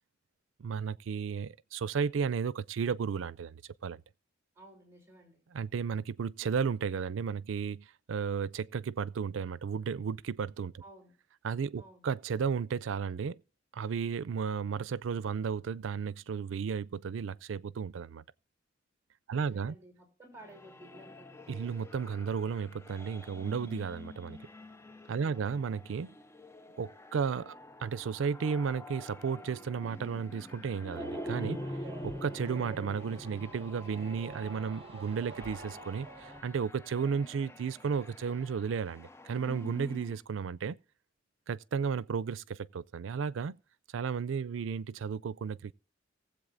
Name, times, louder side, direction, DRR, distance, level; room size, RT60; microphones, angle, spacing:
voice 1, 0.6-4.0 5.5-10.7 11.4-13.4 13.7-18.2 19.3-19.7 21.5-24.4 25.1-26.1 26.8-31.6 32.0-40.8 41.5-43.6 43.9-45.7, right 6 dB, 90° right, 0.4 m, -34 dB
voice 2, 4.5-5.4 10.8-11.1 11.8-12.0 19.3-21.4 25.2-25.5, right 1 dB, 15° right, 3.2 m, -54 dB
sound 1, 20.4-40.2, left 1 dB, 15° left, 0.4 m, -46 dB
sound 2, 30.9-36.4, right 3 dB, 30° right, 1.6 m, -47 dB
19.0 x 7.9 x 2.5 m
head